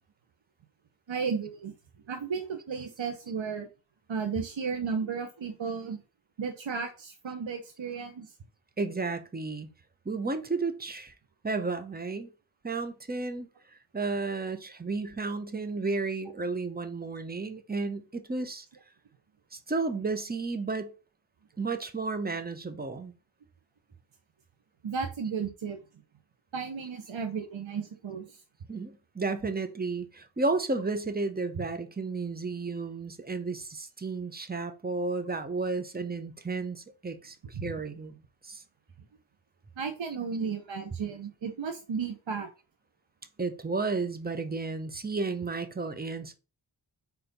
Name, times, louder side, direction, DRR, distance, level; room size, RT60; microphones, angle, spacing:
voice 1, 1.1-1.7 2.1-3.7 4.1-6.0 6.4-8.3 24.8-25.8 26.5-28.4 31.6-31.7 37.5-37.7 39.8-42.5, right 5 dB, 70° right, 0.9 m, -34 dB
voice 2, 8.8-9.7 10.0-11.1 11.4-12.3 12.6-13.5 13.9-18.7 19.5-20.9 21.6-23.1 28.7-38.6 43.4-46.3, right 3 dB, 20° right, 0.8 m, -32 dB
4.4 x 4.1 x 5.2 m
wide cardioid pair, 75°, 47 cm